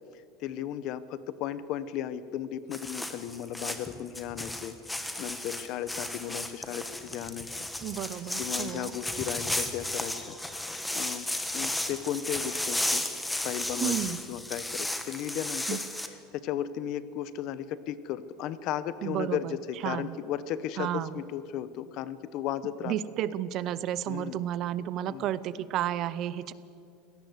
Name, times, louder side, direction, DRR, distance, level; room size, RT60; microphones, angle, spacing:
voice 1, 0.4-4.8 5.2-7.5 8.4-11.3 11.5-13.0 13.4-22.9 24.1-24.4 25.1-25.2, left 10 dB, 45° left, 15 dB, 0.9 m, -35 dB
sound 1, 2.7-16.1, left 1 dB, 5° left, 1.2 m, -34 dB
voice 2, 7.8-8.9 13.8-14.2 15.7-15.8 19.0-19.5 19.8-20.1 20.8-21.2 22.9-26.5, right 11 dB, 35° right, 17 dB, 0.6 m, -32 dB
25.0 x 17.5 x 8.1 m, 2.7 s
cardioid pair, 175°, 0 cm